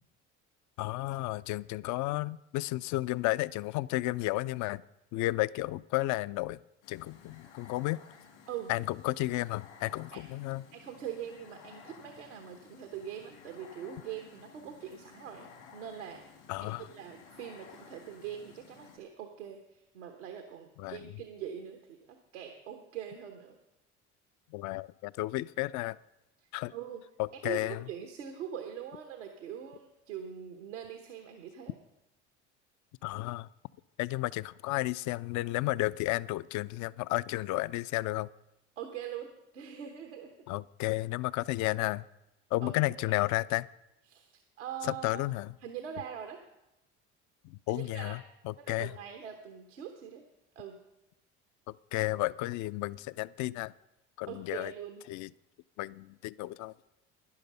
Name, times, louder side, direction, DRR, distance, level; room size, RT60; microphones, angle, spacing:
voice 1, 0.8-4.8 5.1-6.6 6.9-8.0 8.7-10.6 16.5-16.9 20.8-21.1 24.5-26.0 26.5-26.7 27.2-27.9 33.0-33.5 34.0-38.3 40.5-42.0 42.5-43.7 44.8-45.5 47.4-48.9 51.9-53.7 54.2-54.7 55.1-55.3 55.8-56.7, left 18 dB, 55° left, 0.5 m, -32 dB
sound 1, 6.8-19.0, left 6 dB, 80° left, 2.6 m, -55 dB
voice 2, 10.7-16.2 16.6-23.6 26.7-27.0 27.4-31.7 38.8-40.3 42.6-42.7 43.1-43.2 44.1-45.2 45.6-46.4 47.7-48.2 48.6-50.2 50.5-50.8 54.3-55.0, right 9 dB, 85° right, 1.1 m, -43 dB
11.0 x 10.5 x 5.5 m
hypercardioid pair, 60°, 35 cm